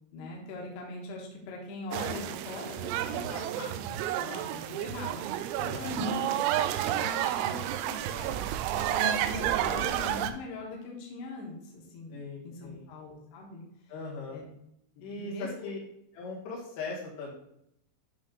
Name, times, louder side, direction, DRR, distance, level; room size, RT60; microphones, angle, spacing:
voice 1, 0.1-3.8 4.2-6.5 6.9-8.3 8.7-12.2 12.4-13.6 14.3-14.4 15.2-15.7, left 3 dB, 70° left, -2 dB, 3.1 m, -41 dB
sound 1, 1.9-10.3, right 11 dB, 90° right, 2.4 m, -31 dB
voice 2, 5.6-5.9 12.1-12.9 13.9-14.4 15.0-15.8 16.1-17.3, left 3 dB, 90° left, -5 dB, 4.6 m, -39 dB
10.5 x 3.6 x 3.7 m, 0.79 s
omnidirectional pair, 5.5 m